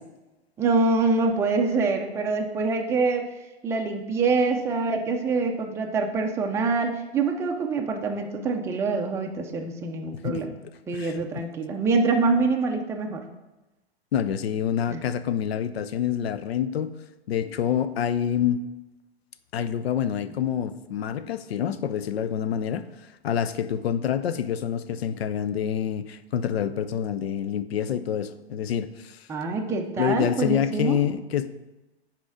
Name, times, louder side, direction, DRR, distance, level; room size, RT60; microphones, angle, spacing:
voice 1, 0.6-3.3 3.6-10.5 10.9-13.3 14.9-15.0 29.3-31.0, right 4 dB, 10° right, 2 dB, 0.5 m, -25 dB
voice 2, 10.9-11.4 14.1-16.9 17.3-18.6 19.5-22.9 23.2-29.2 30.0-31.6, left 9 dB, 70° left, 13 dB, 0.5 m, -27 dB
6.1 x 4.3 x 4.9 m, 1.0 s
figure-of-eight pair, 110°, 33 cm